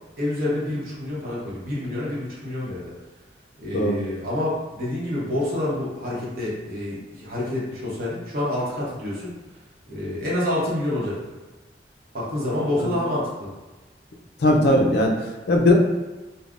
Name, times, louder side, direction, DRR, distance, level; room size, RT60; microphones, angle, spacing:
voice 1, 0.2-2.9 3.6-9.3 9.9-11.2 12.1-13.5, left 1 dB, 50° right, -7 dB, 0.8 m, -27 dB
voice 2, 14.4-15.7, left 1 dB, 60° left, 1 dB, 0.4 m, -19 dB
3.5 x 2.0 x 2.4 m, 1.2 s
head